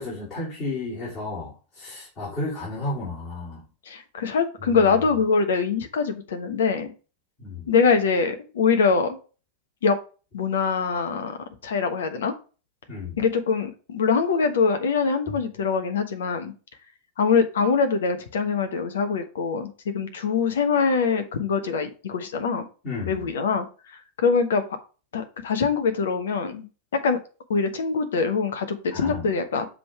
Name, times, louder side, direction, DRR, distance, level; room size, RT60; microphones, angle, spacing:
voice 1, 0.0-3.6 4.6-4.9 7.4-7.7 12.9-13.2 15.3-15.4 22.8-23.3 28.9-29.3, left 2 dB, 35° left, -8 dB, 3.8 m, -33 dB
voice 2, 3.9-6.9 7.7-9.2 9.8-10.0 10.3-11.4 11.6-12.3 13.2-16.5 17.2-22.7 23.1-23.7 24.2-24.6 25.1-26.7 27.0-27.2 27.5-29.7, left 5 dB, 60° left, 7 dB, 1.2 m, -23 dB
7.4 x 3.7 x 4.7 m, 0.35 s
figure-of-eight pair, 90°, 0 cm